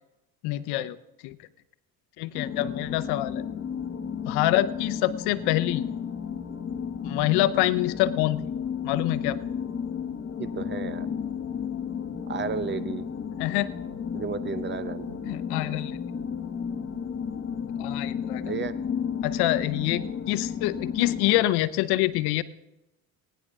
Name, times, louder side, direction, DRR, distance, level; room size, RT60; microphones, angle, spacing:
voice 1, 0.4-1.0 1.2-1.4 2.2-3.4 4.3-5.9 7.0-8.4 8.8-9.4 13.4-13.7 15.2-16.0 17.8-18.5 19.2-22.4, left 16 dB, 75° left, 14 dB, 0.7 m, -26 dB
sound 1, 2.3-21.4, left 7 dB, 35° left, 1.2 m, -33 dB
voice 2, 10.4-11.1 12.3-13.1 14.1-15.2 18.4-18.8, right 6 dB, 30° right, 14 dB, 0.7 m, -33 dB
18.0 x 10.0 x 3.6 m, 0.91 s
supercardioid pair, 90°, 39 cm